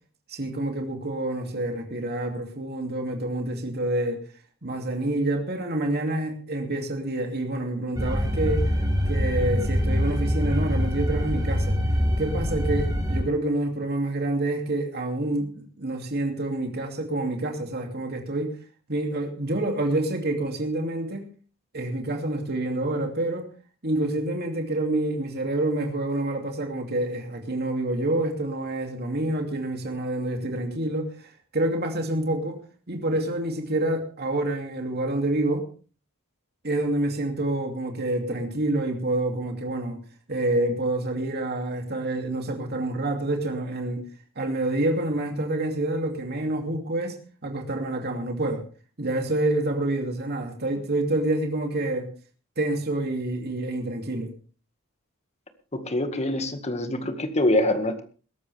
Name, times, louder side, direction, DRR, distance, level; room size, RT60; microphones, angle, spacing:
voice 1, 0.3-4.2 4.6-8.6 9.1-11.8 12.2-18.5 18.9-21.3 21.7-23.5 23.8-32.6 32.9-35.6 36.6-40.0 40.3-44.0 44.4-47.1 47.4-48.6 49.0-52.1 52.6-54.3, right 1 dB, 45° right, 2.7 m, -27 dB
sound 1, 8.0-13.2, equal, 15° right, 3.9 m, -24 dB
voice 2, 55.7-58.0, left 1 dB, 30° left, 1.9 m, -25 dB
21.5 x 12.5 x 3.5 m
head